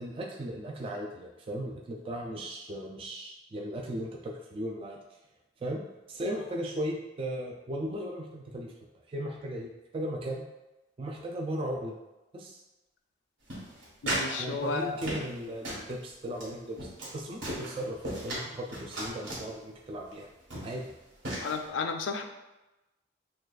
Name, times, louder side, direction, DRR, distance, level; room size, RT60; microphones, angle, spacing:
voice 1, 0.0-5.0 5.6-5.8 6.1-8.7 9.1-10.4 11.0-11.9 12.3-12.6 14.4-20.3 20.6-20.9, right 1 dB, 30° right, -1 dB, 0.3 m, -37 dB
sound 1, 13.5-14.3 14.6-15.4 15.6-15.9 16.3-16.5 16.8-17.1 17.4-18.4 18.7-19.5 20.1-20.2 20.5-20.8 21.2-21.5, right 1 dB, 85° right, 1.5 m, -35 dB
voice 2, 14.0-15.0 21.4-22.2, left 4 dB, 85° left, 5 dB, 0.4 m, -32 dB
6.3 x 2.3 x 2.4 m, 1.0 s
head